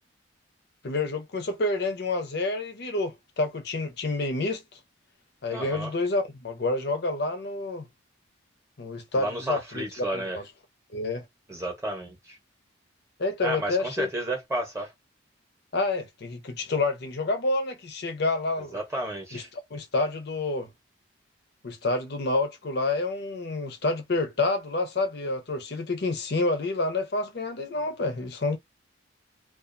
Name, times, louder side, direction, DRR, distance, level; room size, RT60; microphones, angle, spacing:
voice 1, 0.8-4.6 5.4-7.9 8.8-9.8 10.1-10.4 10.9-11.3 13.2-14.1 15.7-18.8 19.3-19.4 19.7-20.7 21.6-28.6, left 2 dB, 55° left, 0.6 m, -28 dB
voice 2, 5.5-5.9 9.1-10.4 11.5-12.4 13.4-14.9 18.7-19.5, right 1 dB, 15° right, 0.8 m, -32 dB
2.4 x 2.2 x 2.5 m
head